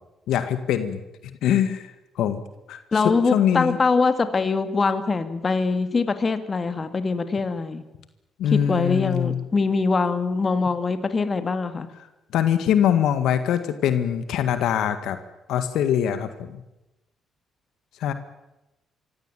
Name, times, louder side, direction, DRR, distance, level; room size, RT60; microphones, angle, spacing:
voice 1, 0.3-1.0 1.4-1.9 2.1-2.4 2.7-3.8 8.4-9.4 12.3-15.2 15.5-16.6 18.0-18.1, left 9 dB, 85° left, 10 dB, 1.7 m, -23 dB
voice 2, 2.9-7.8 8.5-11.9, left 4 dB, 35° left, 10 dB, 2.2 m, -23 dB
24.5 x 16.0 x 9.1 m, 0.94 s
cardioid pair, 90°, 0 cm